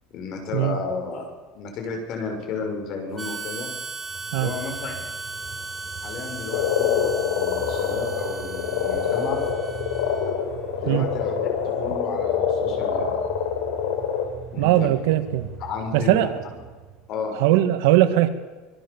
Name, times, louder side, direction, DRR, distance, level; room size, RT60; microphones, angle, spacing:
voice 1, 0.1-1.3 1.5-3.7 4.3-5.1 6.0-9.4 10.8-13.2 14.5-14.9 15.6-16.3 17.1-17.7, left 4 dB, 45° left, 4 dB, 6.4 m, -32 dB
Harmonica, 3.2-10.4, right 3 dB, 10° right, 2.9 m, -36 dB
sound 1, 4.0-17.1, right 8 dB, 25° right, 4.7 m, -41 dB
Frog, 6.5-14.3, left 8 dB, 85° left, 5.0 m, -25 dB
voice 2, 14.6-15.5 15.9-16.4 17.4-18.3, right 14 dB, 70° right, 9 dB, 2.0 m, -19 dB
26.0 x 22.0 x 7.2 m, 1.3 s
supercardioid pair, 155°, 0 cm